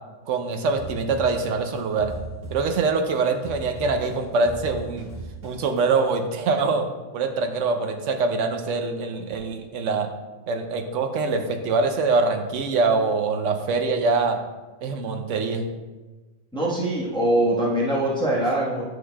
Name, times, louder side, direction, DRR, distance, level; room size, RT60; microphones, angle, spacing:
voice 1, 0.3-2.1 2.5-5.1 5.4-6.9 7.1-10.1 10.5-14.4 14.8-15.7, right 4 dB, 70° right, 6 dB, 0.9 m, -24 dB
sound 1, 0.8-3.1 3.4-5.8, right 3 dB, 45° right, 1.5 m, -37 dB
voice 2, 16.5-18.9, right 1 dB, 5° left, -6 dB, 1.0 m, -23 dB
9.2 x 5.7 x 2.2 m, 1.2 s
omnidirectional pair, 1.4 m